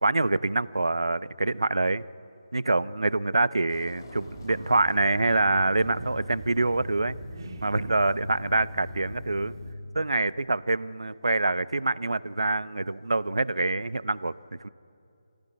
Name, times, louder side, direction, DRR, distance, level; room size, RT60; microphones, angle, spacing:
voice 1, 0.0-2.0 2.5-7.2 7.6-9.6 9.9-14.3 14.6-14.7, right 2 dB, 70° right, 18 dB, 0.7 m, -25 dB
sound 1, 3.7-9.3, left 2 dB, 40° left, 2.5 m, -52 dB
sound 2, 4.2-9.7, equal, 45° right, 2.2 m, -40 dB
25.0 x 16.0 x 9.3 m, 2.6 s
figure-of-eight pair, 150°, 3 cm